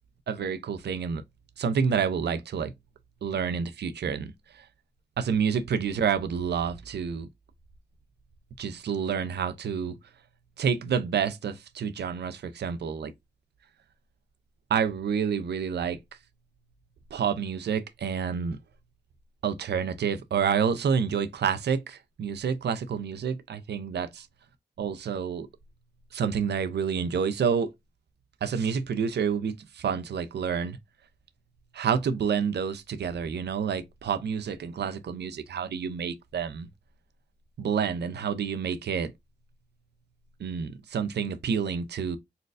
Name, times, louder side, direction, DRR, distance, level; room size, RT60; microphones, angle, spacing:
voice 1, 0.3-1.2 1.6-2.7 3.2-4.7 5.2-7.3 8.6-10.0 10.6-13.1 14.7-16.0 17.1-18.6 19.4-24.1 24.8-25.5 26.1-27.7 28.4-30.8 31.7-36.7 37.6-39.1 40.4-42.2, right 6 dB, 70° right, 0.5 m, -28 dB
4.1 x 2.2 x 2.4 m
supercardioid pair, 40°, 18 cm